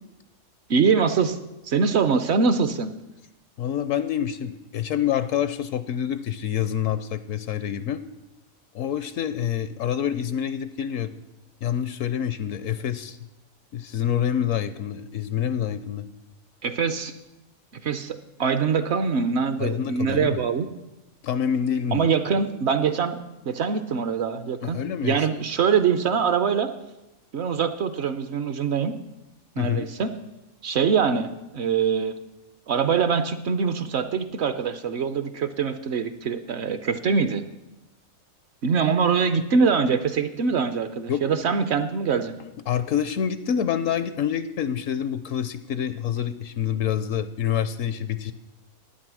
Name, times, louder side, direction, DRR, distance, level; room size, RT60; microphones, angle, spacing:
voice 1, 0.7-1.4 1.6-3.0 16.6-17.1 17.8-20.7 21.9-26.7 27.3-28.9 29.6-30.1 30.6-32.1 32.7-37.4 38.6-42.4, right 6 dB, 60° right, 10 dB, 0.8 m, -23 dB
voice 2, 3.6-8.0 8.7-11.1 11.6-13.2 13.7-16.1 19.6-20.4 21.2-22.1 24.6-25.4 29.6-29.9 41.1-41.3 42.7-48.3, left 9 dB, 70° left, 13 dB, 0.9 m, -27 dB
11.5 x 9.1 x 6.1 m, 0.98 s
omnidirectional pair, 1.4 m